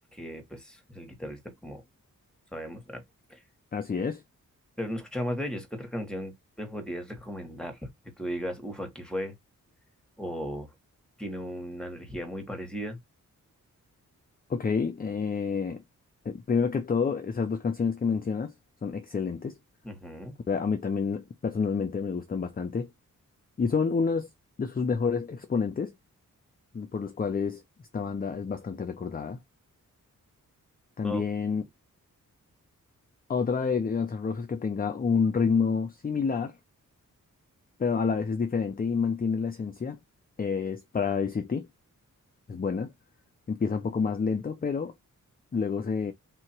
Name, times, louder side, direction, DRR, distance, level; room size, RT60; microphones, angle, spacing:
voice 1, 0.1-1.8 2.5-3.0 3.3-3.4 4.8-7.8 8.2-9.3 10.2-10.7 11.2-13.0 19.8-20.4 31.0-31.3, equal, 5° left, 1.5 m, -36 dB
voice 2, 3.7-4.2 14.5-15.8 16.2-18.5 18.8-19.6 20.5-22.9 23.6-24.3 24.6-25.9 26.7-27.6 27.9-29.4 31.0-31.6 33.3-36.6 37.8-40.0 40.4-41.7 42.5-42.9 43.5-44.9 45.5-46.1, left 5 dB, 30° left, 0.5 m, -28 dB
3.7 x 2.9 x 4.5 m
wide cardioid pair, 155°, 32 cm